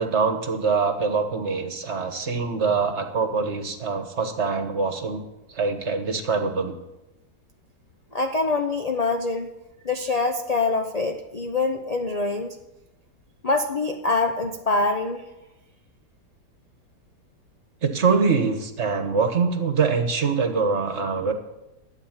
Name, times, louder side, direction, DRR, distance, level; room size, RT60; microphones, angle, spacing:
voice 1, 0.0-5.2 5.5-6.8 17.8-21.3, right 5 dB, 45° right, 6 dB, 1.3 m, -24 dB
voice 2, 8.1-9.5 9.8-12.6 13.4-15.2, left 3 dB, 55° left, 4 dB, 0.4 m, -24 dB
12.0 x 8.9 x 7.3 m, 0.98 s
omnidirectional pair, 1.9 m